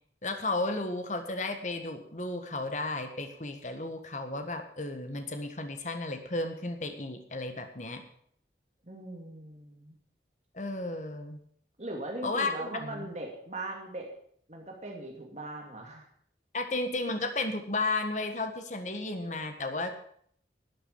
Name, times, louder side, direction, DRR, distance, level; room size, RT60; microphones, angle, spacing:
voice 1, 0.2-8.0 10.5-11.4 12.2-13.1 16.5-20.0, left 2 dB, 45° left, 7 dB, 1.5 m, -33 dB
voice 2, 8.8-9.9 11.8-14.1 14.5-16.0, right 1 dB, 40° right, 1 dB, 2.5 m, -40 dB
12.0 x 8.6 x 8.4 m, 0.63 s
head